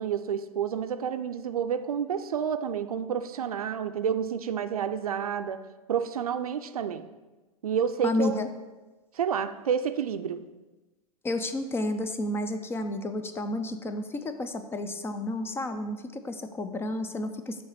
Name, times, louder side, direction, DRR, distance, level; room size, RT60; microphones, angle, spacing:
voice 1, 0.0-5.6 5.9-7.1 7.6-8.4 9.1-10.4, right 8 dB, 75° right, 10 dB, 0.5 m, -29 dB
voice 2, 8.0-8.5 11.2-17.6, left 2 dB, 10° left, 9 dB, 0.4 m, -31 dB
7.0 x 3.1 x 5.6 m, 1.1 s
figure-of-eight pair, 95°, 19 cm